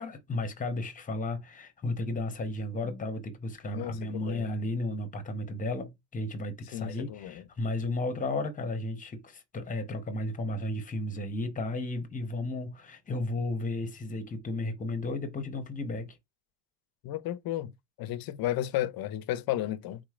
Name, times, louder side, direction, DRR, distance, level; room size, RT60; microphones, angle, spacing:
voice 1, 0.0-16.2, left 2 dB, 15° left, 0.7 m, -34 dB
voice 2, 3.7-4.5 6.7-7.4 17.0-17.7 18.0-20.0, left 13 dB, 50° left, 0.5 m, -33 dB
3.7 x 3.1 x 2.4 m
cardioid pair, 125°, 46 cm